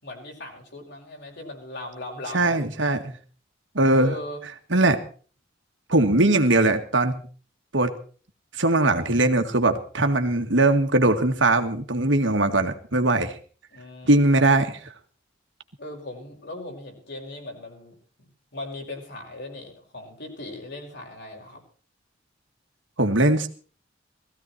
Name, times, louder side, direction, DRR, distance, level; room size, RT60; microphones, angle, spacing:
voice 1, 0.0-2.6 2.9-3.0 3.9-4.4 13.7-14.3 15.8-17.9 18.5-21.6, left 2 dB, 65° left, 1 dB, 5.8 m, -38 dB
voice 2, 2.3-3.0 3.7-4.1 4.7-5.0 5.9-7.2 7.7-7.9 8.5-13.4 14.0-14.8 23.0-23.5, right 2 dB, 75° right, 6 dB, 2.0 m, -20 dB
18.5 x 15.5 x 4.4 m, 0.40 s
head